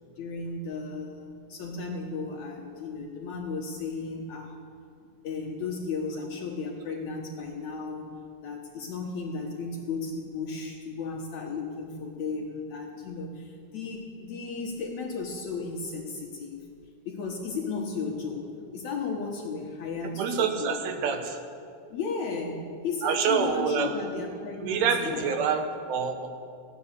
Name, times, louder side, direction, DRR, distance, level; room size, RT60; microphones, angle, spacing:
voice 1, 0.1-4.6 5.2-8.1 8.4-16.7 17.0-20.8 21.9-25.3, left 4 dB, 70° left, 0 dB, 1.7 m, -35 dB
voice 2, 20.2-21.4 23.0-24.3 24.6-26.3, right 6 dB, 80° right, 6 dB, 3.2 m, -27 dB
15.5 x 10.5 x 6.7 m, 2.3 s
omnidirectional pair, 4.7 m